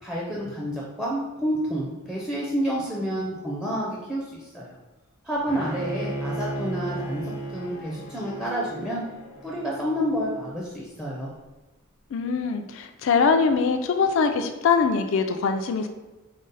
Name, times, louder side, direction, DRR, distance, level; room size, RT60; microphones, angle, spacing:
voice 1, 0.0-4.7 5.2-9.0 9.4-11.3, equal, 5° right, -5 dB, 0.5 m, -29 dB
Bowed string instrument, 5.5-10.5, right 1 dB, 85° left, 0.8 m, -35 dB
voice 2, 12.1-15.9, left 5 dB, 60° left, 6 dB, 0.4 m, -22 dB
5.1 x 2.0 x 3.9 m, 1.1 s
head